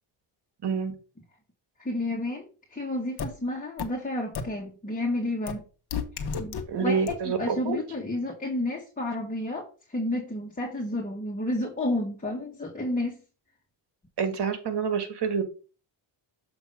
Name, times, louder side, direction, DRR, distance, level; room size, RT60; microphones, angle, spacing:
voice 1, 0.6-0.9 6.7-7.8 14.2-15.4, right 6 dB, 50° right, 8 dB, 1.7 m, -27 dB
voice 2, 1.8-5.6 6.4-13.2, left 1 dB, 15° left, 0 dB, 1.6 m, -31 dB
sound 1, 3.2-3.3 3.8-3.9 4.3-4.4 5.5-5.6 5.9-6.6 7.1-7.2, left 6 dB, 50° left, 1.2 m, -30 dB
7.0 x 3.0 x 5.5 m, 0.36 s
cardioid pair, 70°, 50 cm